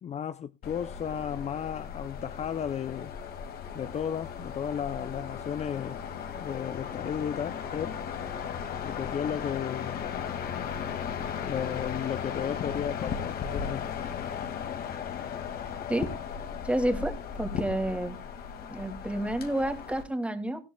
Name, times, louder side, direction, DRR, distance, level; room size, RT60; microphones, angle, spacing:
voice 1, 0.0-3.1 3.7-6.0 6.4-8.0 8.8-10.0 11.4-13.9, left 8 dB, 40° left, 0.6 m, -34 dB
sound 1, 0.6-20.0, left 7 dB, 65° left, 2.2 m, -36 dB
voice 2, 16.6-18.2 18.7-20.6, right 1 dB, 5° right, 2.4 m, -30 dB
18.0 x 13.5 x 2.3 m
cardioid pair, 110°, 17 cm